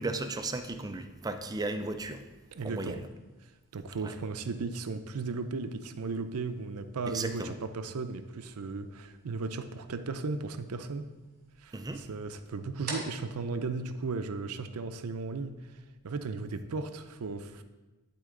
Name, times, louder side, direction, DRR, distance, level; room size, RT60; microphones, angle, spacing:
voice 1, 0.0-2.3 2.6-3.0 4.0-4.1 7.1-7.6 11.7-12.1, right 2 dB, 15° right, 7 dB, 0.4 m, -35 dB
sound 1, 1.2-14.8, right 3 dB, 45° right, 2.6 m, -51 dB
voice 2, 2.5-3.0 3.7-11.0 11.6-15.6 16.0-17.6, right 4 dB, 80° right, 9 dB, 0.5 m, -36 dB
11.0 x 4.4 x 3.8 m, 1.2 s
head